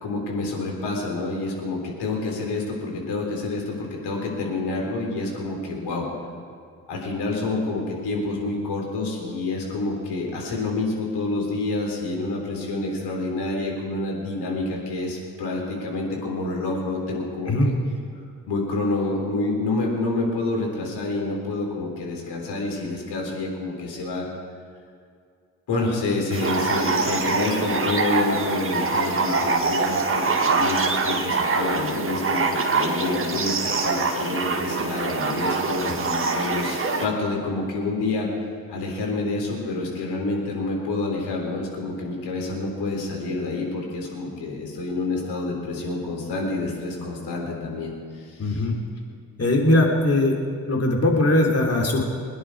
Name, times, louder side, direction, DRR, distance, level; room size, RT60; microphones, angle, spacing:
voice 1, 0.0-6.1 6.9-17.7 18.5-24.2 25.7-38.3 38.7-48.6, left 2 dB, 60° left, -1 dB, 3.8 m, -28 dB
sound 1, 26.3-37.1, right 3 dB, 30° right, 2.0 m, -24 dB
voice 2, 48.4-48.7 49.4-50.4 50.7-52.0, left 1 dB, 35° left, 0 dB, 3.2 m, -20 dB
22.0 x 10.0 x 4.8 m, 2.3 s
hypercardioid pair, 45°, 44 cm